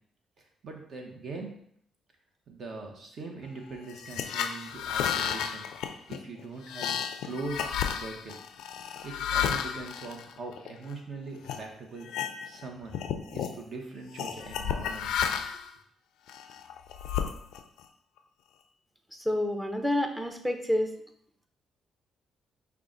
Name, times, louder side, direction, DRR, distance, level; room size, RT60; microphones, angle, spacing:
voice 1, 0.6-1.6 2.5-6.9 7.2-8.4 9.0-12.1 12.4-13.0 13.3-15.5, right 3 dB, 55° right, 2 dB, 1.1 m, -41 dB
sound 1, 3.9-10.9 11.4-11.6 12.0-12.6 12.9-13.6 14.2-15.7 16.3-17.8, left 8 dB, 85° left, 0.3 m, -32 dB
voice 2, 19.2-20.9, left 1 dB, 5° right, 5 dB, 0.6 m, -28 dB
5.6 x 2.4 x 3.8 m, 0.67 s
cardioid pair, 90°, 0 cm